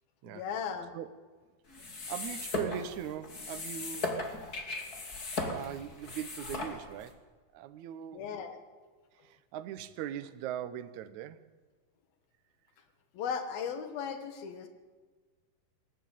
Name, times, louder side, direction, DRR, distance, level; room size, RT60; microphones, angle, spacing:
voice 1, 0.3-0.9 8.1-8.6 13.1-14.7, left 7 dB, 90° left, 8 dB, 3.6 m, -36 dB
sound 1, 1.7-7.1, left 2 dB, 30° left, 2.7 m, -37 dB
voice 2, 2.1-4.2 5.2-7.2 7.5-8.3 9.1-11.4, right 10 dB, 65° right, 13 dB, 2.2 m, -40 dB
21.0 x 18.5 x 9.2 m, 1.4 s
omnidirectional pair, 4.1 m